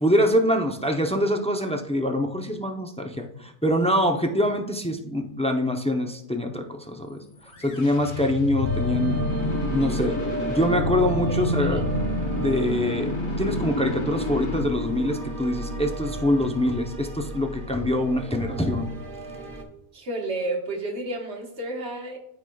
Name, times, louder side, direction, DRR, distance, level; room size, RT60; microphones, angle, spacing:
voice 1, 0.0-7.2 7.6-9.2 9.7-10.2 10.5-11.8 12.4-13.1 13.4-18.9, left 1 dB, 10° left, 4 dB, 0.3 m, -24 dB
sound 1, 7.5-15.6, left 2 dB, 65° left, 1.3 m, -29 dB
voice 2, 7.6-7.9 11.3-11.8 19.9-22.2, right 2 dB, 65° right, 2 dB, 1.5 m, -32 dB
sound 2, 8.6-19.6, right 1 dB, 45° right, 1.2 m, -33 dB
13.5 x 4.9 x 2.3 m, 0.77 s
omnidirectional pair, 1.2 m